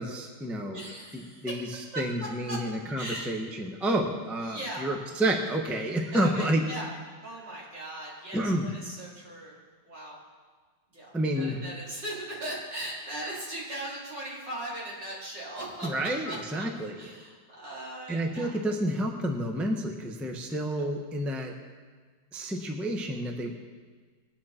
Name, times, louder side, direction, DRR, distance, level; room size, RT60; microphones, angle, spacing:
voice 1, 0.0-0.8 1.4-6.6 8.3-8.7 11.1-11.6 15.8-17.0 18.1-21.5 22.3-23.5, right 1 dB, ahead, 2 dB, 0.8 m, -29 dB
voice 2, 0.7-1.7 1.9-2.0 2.5-2.6 3.0-3.3 3.8-3.9 4.4-4.9 6.1-6.9 7.2-9.6 9.8-10.2 10.9-15.9 16.2-16.7 17.0-18.5, right 1 dB, 65° right, -6 dB, 4.7 m, -39 dB
21.5 x 9.5 x 4.4 m, 1.5 s
omnidirectional pair, 2.0 m